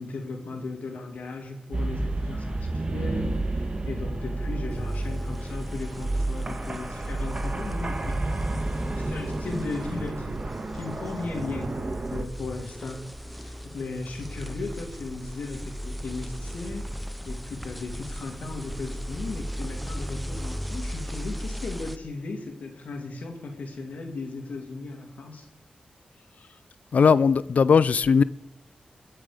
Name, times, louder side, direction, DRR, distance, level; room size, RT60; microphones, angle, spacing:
voice 1, 0.0-8.2 9.0-13.0 13.3-25.5, left 3 dB, 85° left, 2.5 m, -36 dB
sound 1, 1.7-12.2, right 2 dB, 40° right, 1.6 m, -31 dB
sound 2, 4.7-22.0, equal, ahead, 0.6 m, -37 dB
voice 2, 26.9-28.2, left 6 dB, 70° left, 0.4 m, -18 dB
21.5 x 7.6 x 5.1 m
cardioid pair, 70°, 3 cm